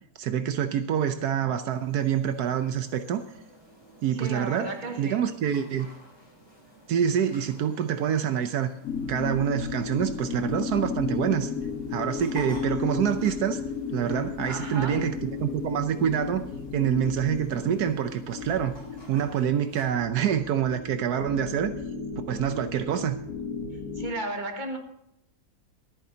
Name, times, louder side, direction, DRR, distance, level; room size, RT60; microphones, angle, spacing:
voice 1, 0.2-3.2 4.0-4.7 5.0-5.9 6.9-8.7 9.1-11.5 11.9-13.6 13.9-16.4 16.7-18.7 19.1-21.7 22.3-23.2, right 9 dB, 80° right, 9 dB, 1.3 m, -26 dB
sound 1, 1.7-19.8, right 2 dB, 15° left, 4.1 m, -52 dB
voice 2, 4.1-5.2 14.5-15.1 23.7-24.8, right 2 dB, 30° right, 3 dB, 1.9 m, -34 dB
sound 2, 8.8-24.1, left 5 dB, 70° left, 1.7 m, -34 dB
23.5 x 9.5 x 2.8 m, 0.79 s
omnidirectional pair, 1.7 m